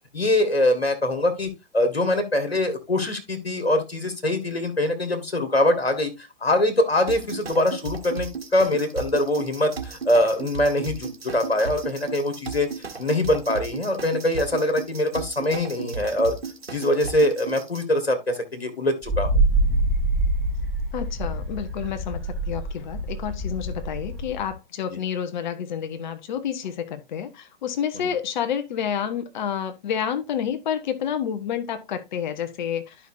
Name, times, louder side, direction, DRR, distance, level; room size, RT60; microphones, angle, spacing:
voice 1, 0.1-12.7 13.0-16.4 16.7-19.3 28.0-28.1, left 1 dB, 85° left, 1.9 m, -23 dB
sound 1, 7.1-17.8, right 6 dB, 80° right, 1.6 m, -35 dB
Wind, 19.0-24.5, right 2 dB, ahead, 4.1 m, -25 dB
voice 2, 20.9-33.0, left 8 dB, 50° left, 1.3 m, -29 dB
12.0 x 5.5 x 2.7 m
figure-of-eight pair, 115°, 30 cm